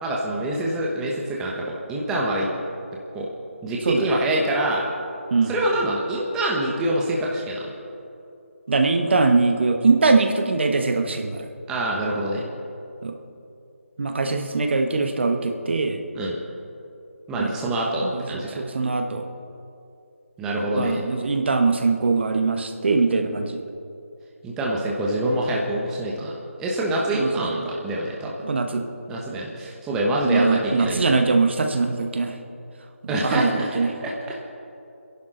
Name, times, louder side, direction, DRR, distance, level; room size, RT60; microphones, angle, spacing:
voice 1, 0.0-2.5 3.1-3.3 3.6-4.8 5.5-7.7 11.7-12.4 16.1-16.4 17.3-18.6 20.4-21.0 24.4-28.3 29.1-31.2 33.1-34.1, right 1 dB, 10° right, -3 dB, 1.1 m, -25 dB
voice 2, 8.7-11.5 13.0-13.1 14.0-16.0 17.4-17.5 18.0-19.3 20.7-23.6 27.1-27.3 27.6-27.7 28.4-28.8 30.2-32.3 33.0-33.9, right 3 dB, 55° right, 5 dB, 1.3 m, -22 dB
27.5 x 11.0 x 3.9 m, 2.7 s
figure-of-eight pair, 165°, 7 cm